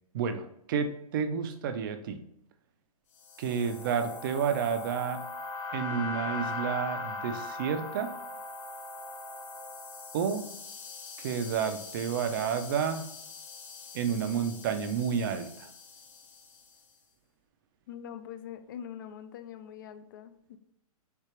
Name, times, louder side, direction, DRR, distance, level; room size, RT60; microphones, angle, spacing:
voice 1, 0.1-2.2 3.4-5.2 5.7-8.1 10.1-10.5 11.2-13.1 13.9-15.7, right 7 dB, 35° right, 8 dB, 0.5 m, -30 dB
sound 1, 3.2-16.6, left 3 dB, 55° left, 1.1 m, -41 dB
voice 2, 17.9-20.6, left 9 dB, 35° left, 11 dB, 0.4 m, -43 dB
6.6 x 2.4 x 3.1 m, 0.77 s
hypercardioid pair, 160°, 19 cm